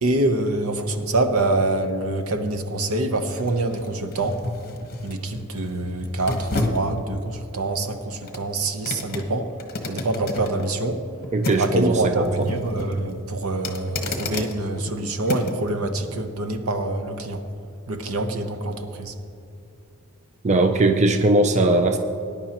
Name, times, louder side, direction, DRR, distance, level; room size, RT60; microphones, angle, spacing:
voice 1, 0.0-4.4 5.0-9.5 9.8-11.0 11.6-17.4 17.9-19.1, right 2 dB, 70° right, 7 dB, 0.9 m, -25 dB
sound 1, 1.0-15.7 16.2-16.3, left 2 dB, 40° left, 1.1 m, -33 dB
voice 2, 11.3-12.5 20.4-22.0, right 2 dB, 30° right, 6 dB, 0.5 m, -19 dB
19.0 x 10.5 x 3.0 m, 2.6 s
head